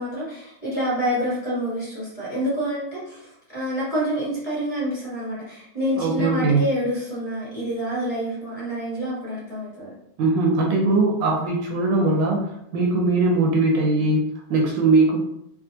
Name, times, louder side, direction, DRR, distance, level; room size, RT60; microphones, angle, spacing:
voice 1, 0.0-9.9, equal, 20° left, -9 dB, 1.3 m, -27 dB
voice 2, 6.0-6.6 10.2-15.2, right 3 dB, 75° right, 0 dB, 1.2 m, -20 dB
3.3 x 2.3 x 2.7 m, 0.77 s
omnidirectional pair, 2.1 m